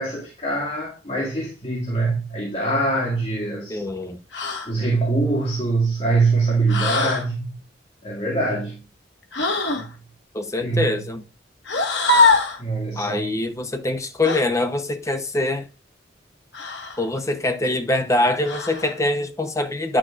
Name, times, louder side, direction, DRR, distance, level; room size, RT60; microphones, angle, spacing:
voice 1, 0.0-3.8 4.7-7.6 8.0-8.8 9.8-9.9 10.6-10.9 12.6-13.4, right 3 dB, 35° left, 2.0 m, -23 dB
voice 2, 3.7-4.2 10.3-11.2 12.9-15.7 17.0-20.0, left 2 dB, 15° left, 0.7 m, -24 dB
sound 1, 4.3-4.7 6.7-7.3 9.3-9.9 11.6-12.6 14.2-14.5 16.5-17.0 18.4-18.9, left 3 dB, 75° left, 1.3 m, -22 dB
9.5 x 6.2 x 2.4 m
head